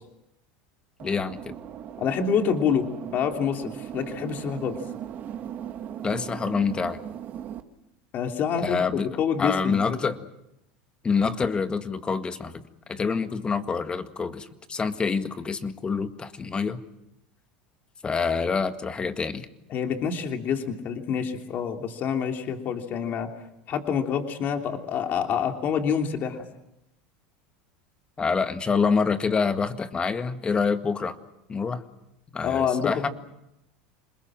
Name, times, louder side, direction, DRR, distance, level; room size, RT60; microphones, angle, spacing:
voice 1, 1.0-1.6 6.0-7.0 8.6-10.2 11.0-12.6 12.9-16.8 18.0-19.5 28.2-31.2 31.5-31.8 32.3-33.1, left 5 dB, 20° left, 9 dB, 1.8 m, -26 dB
sound 1, 1.0-7.6, right 9 dB, 40° right, 2.0 m, -38 dB
voice 2, 2.0-4.8 8.1-10.0 19.7-23.3 23.7-26.4 32.4-33.1, left 7 dB, 45° left, 4 dB, 3.0 m, -27 dB
27.5 x 21.0 x 7.6 m, 0.85 s
supercardioid pair, 115°, 5 cm